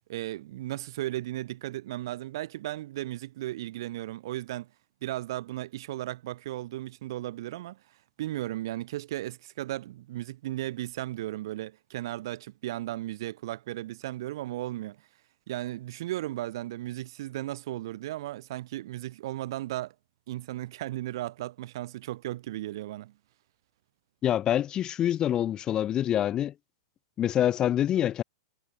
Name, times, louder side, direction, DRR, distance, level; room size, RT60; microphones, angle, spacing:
voice 1, 0.1-4.7 5.0-7.8 8.2-15.0 15.5-19.9 20.3-23.1, right 15 dB, 65° right, 5.6 m, -35 dB
voice 2, 24.2-26.5 27.2-28.2, left 11 dB, 30° left, 3.0 m, -26 dB
hypercardioid pair, 110°, 3 cm